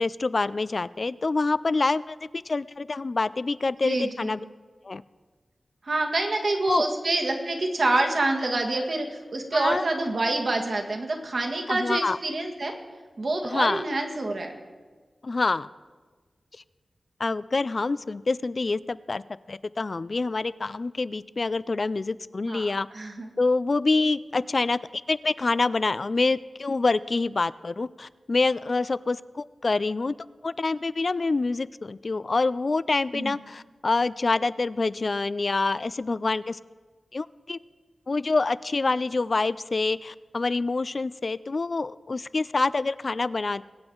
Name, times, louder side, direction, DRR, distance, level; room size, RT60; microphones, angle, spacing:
voice 1, 0.0-2.2 2.5-4.4 4.8-5.0 6.7-6.9 9.5-9.8 11.7-12.2 13.4-13.8 15.2-15.7 17.2-19.2 19.5-22.9 23.4-30.1 30.4-36.6 37.1-37.6 38.1-43.6, left 3 dB, 45° left, 17 dB, 0.3 m, -26 dB
voice 2, 3.8-4.4 5.8-12.7 13.2-14.5 22.5-22.7 22.9-23.3 33.1-33.4, right 2 dB, 60° right, 2 dB, 1.8 m, -27 dB
22.0 x 8.8 x 3.9 m, 1.4 s
wide cardioid pair, 95°, 0 cm